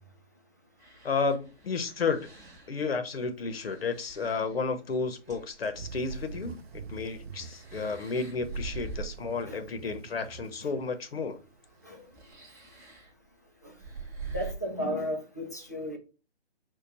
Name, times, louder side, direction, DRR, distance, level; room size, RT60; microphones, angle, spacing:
sound 1, 0.8-2.8 3.4-5.8 6.0-9.3 10.5-10.6 12.1-13.1 13.8-14.5, right 4 dB, 15° right, 0.8 m, -43 dB
voice 1, 1.0-2.3 2.7-6.6 6.9-11.4, left 4 dB, 65° left, 0.8 m, -32 dB
sound 2, 5.7-12.4, right 5 dB, 70° right, 0.5 m, -46 dB
voice 2, 14.3-16.0, left 1 dB, 15° left, 0.4 m, -34 dB
4.6 x 2.2 x 3.9 m
figure-of-eight pair, 140°, 33 cm